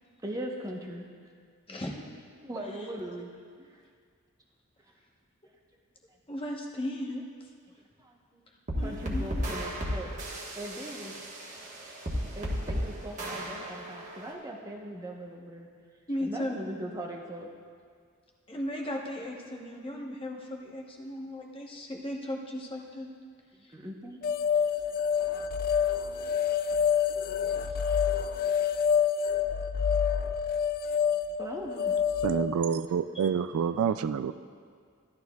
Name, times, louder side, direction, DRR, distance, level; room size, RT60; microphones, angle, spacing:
voice 1, 0.2-1.0 2.4-3.3 3.6-3.8 8.0-8.4 8.8-10.1 10.5-11.1 12.4-15.7 16.2-17.5 23.7-24.2 24.5-26.1 26.7-26.8 27.3-27.5 28.3-28.6 29.2-29.3 30.1-30.2 31.4-32.0, right 1 dB, 15° right, 0 dB, 0.9 m, -40 dB
voice 2, 1.7-2.0 6.3-7.2 8.8-9.4 16.1-16.6 18.5-23.1 27.7-27.8 33.1-33.3, left 1 dB, 25° left, 0 dB, 0.9 m, -36 dB
sound 1, 8.7-14.3, equal, 35° right, 1.3 m, -34 dB
sound 2, 24.2-32.5, left 7 dB, 40° left, 0.3 m, -27 dB
voice 3, 32.2-34.3, right 7 dB, 75° right, 13 dB, 0.3 m, -28 dB
15.5 x 11.5 x 2.3 m, 2.1 s
head